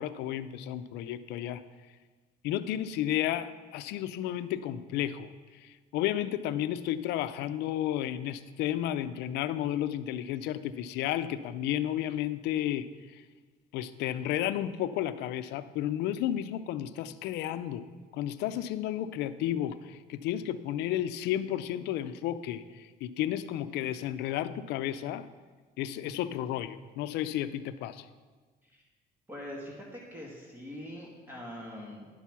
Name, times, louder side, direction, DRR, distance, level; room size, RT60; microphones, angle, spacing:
voice 1, 0.0-1.6 2.4-13.2 13.7-25.3 25.8-28.1, left 12 dB, 90° left, 13 dB, 0.5 m, -32 dB
voice 2, 29.3-32.1, left 1 dB, 10° right, -3 dB, 1.8 m, -43 dB
10.5 x 5.7 x 6.0 m, 1.4 s
cardioid pair, 110°, 17 cm